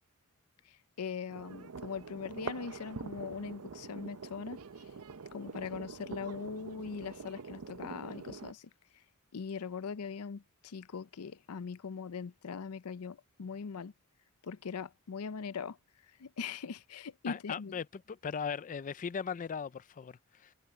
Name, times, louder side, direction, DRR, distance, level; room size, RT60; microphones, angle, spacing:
voice 1, 0.6-4.6 5.3-8.7 9.3-13.9 14.4-15.8 16.2-17.7, left 6 dB, 90° left, 0.5 m, -41 dB
sound 1, 1.3-8.5, right 5 dB, 75° right, 0.7 m, -45 dB
voice 2, 17.3-20.5, left 6 dB, 35° left, 0.4 m, -38 dB
head